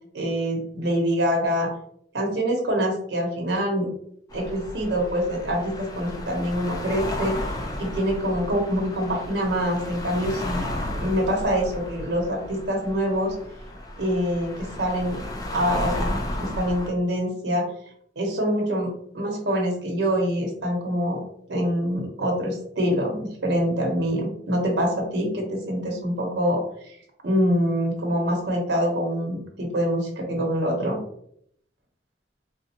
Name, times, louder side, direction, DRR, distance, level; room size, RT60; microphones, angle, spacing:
voice 1, 0.1-1.7 2.1-3.9 4.3-7.3 7.8-13.3 14.0-15.2 15.5-16.1 16.4-17.6 18.2-21.2 21.5-27.0 27.2-31.0, equal, 70° right, 1 dB, 0.8 m, -25 dB
sound 1, 4.3-16.9, left 1 dB, 20° left, 0.5 m, -33 dB
3.9 x 2.3 x 2.8 m, 0.68 s
head